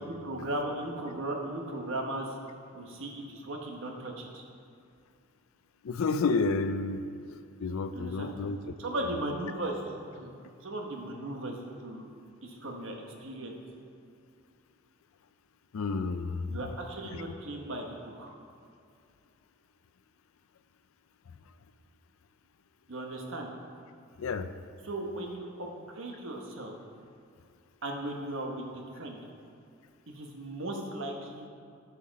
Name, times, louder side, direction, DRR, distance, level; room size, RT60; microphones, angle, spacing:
voice 1, 0.1-2.3 2.7-4.4 7.9-8.3 8.8-12.1 12.4-13.6 16.5-18.3 22.9-23.5 24.8-26.8 27.8-28.7 28.9-29.2 30.1-31.5, right 1 dB, 60° right, 1 dB, 1.1 m, -37 dB
voice 2, 5.8-7.1 7.6-8.7 9.0-9.1 15.7-16.6 24.2-24.5, left 4 dB, 70° left, 11 dB, 0.4 m, -30 dB
8.4 x 5.7 x 5.2 m, 2.5 s
head